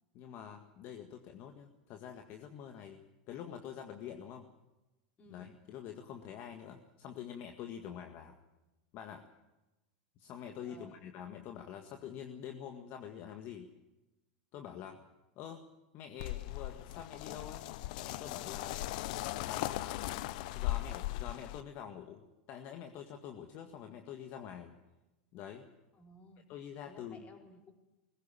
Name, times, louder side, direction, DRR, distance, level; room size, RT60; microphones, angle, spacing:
voice 1, 0.1-4.5 5.3-8.4 8.9-9.3 10.2-13.7 14.5-15.0 15.4-15.6 15.9-17.7 18.0-18.8 19.4-22.2 22.5-24.7 25.3-25.7 26.5-27.2, left 9 dB, 50° left, 5 dB, 1.8 m, -46 dB
voice 2, 10.6-11.0 25.9-26.5 26.8-27.7, left 1 dB, 30° left, 3 dB, 4.6 m, -57 dB
sound 1, 16.2-21.6, left 17 dB, 65° left, 0.7 m, -38 dB
20.0 x 16.0 x 9.1 m, 1.0 s
hypercardioid pair, 105°, 5 cm